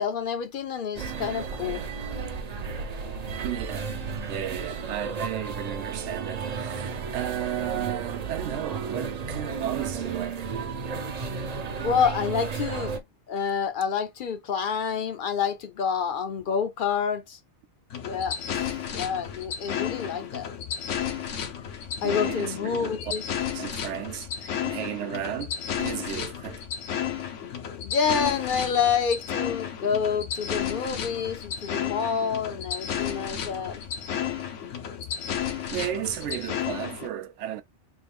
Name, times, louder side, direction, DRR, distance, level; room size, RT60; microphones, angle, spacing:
voice 1, 0.0-1.8 11.8-17.4 18.0-20.5 22.0-23.2 27.8-33.8, left 6 dB, 60° left, 0.6 m, -28 dB
sound 1, 0.9-13.0, right 5 dB, 45° right, 0.5 m, -33 dB
voice 2, 3.4-3.9 4.3-10.5 22.0-23.1 23.5-26.6 35.7-37.6, right 11 dB, 75° right, 0.9 m, -34 dB
sound 2, 17.9-37.1, left 8 dB, 90° left, 1.1 m, -32 dB
3.6 x 2.4 x 3.4 m
omnidirectional pair, 1.2 m